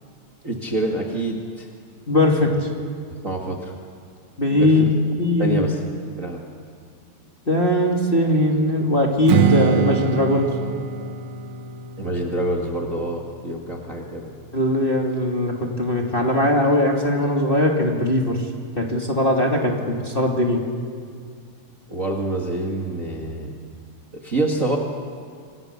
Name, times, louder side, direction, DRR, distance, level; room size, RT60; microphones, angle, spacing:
voice 1, 0.4-1.7 3.1-3.7 4.5-4.7 5.4-5.8 6.2-6.4 12.0-14.3 21.9-23.5 24.2-24.8, right 2 dB, 30° right, -1 dB, 2.0 m, -26 dB
voice 2, 2.1-2.5 4.4-4.8 5.2-5.7 7.5-10.5 14.5-18.4 18.8-20.6, left 1 dB, 20° left, 0 dB, 2.5 m, -20 dB
Strum, 9.3-14.5, right 7 dB, 70° right, 1.3 m, -25 dB
28.5 x 27.0 x 6.8 m, 2.2 s
omnidirectional pair, 3.4 m